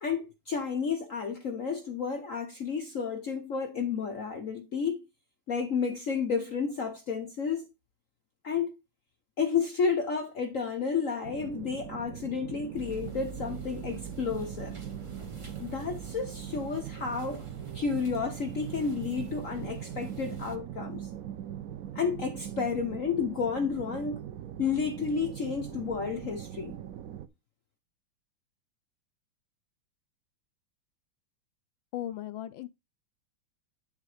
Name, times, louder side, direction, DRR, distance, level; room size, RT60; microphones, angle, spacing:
voice 1, 0.0-5.0 5.5-7.7 8.4-8.7 9.4-14.8 15.6-17.4 17.7-21.1 21.9-24.2 24.6-26.7, left 6 dB, 55° left, 1.0 m, -31 dB
sound 1, 11.2-27.3, right 10 dB, 80° right, 0.7 m, -41 dB
sound 2, 12.8-20.6, right 4 dB, 25° right, 0.7 m, -45 dB
voice 2, 31.9-32.7, left 12 dB, 75° left, 1.2 m, -36 dB
10.5 x 3.8 x 4.9 m
omnidirectional pair, 2.3 m